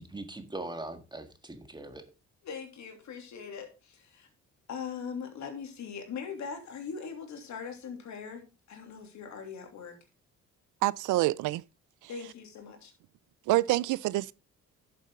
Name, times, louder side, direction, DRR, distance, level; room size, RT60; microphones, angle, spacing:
voice 1, 0.0-2.0, right 2 dB, 15° right, 1.7 m, -41 dB
voice 2, 2.4-4.3 4.7-10.0 12.1-12.9, left 6 dB, 70° left, 3.0 m, -41 dB
voice 3, 10.8-11.6 13.5-14.3, right 17 dB, 85° right, 0.5 m, -26 dB
11.5 x 7.2 x 3.7 m
cardioid pair, 90°, 30 cm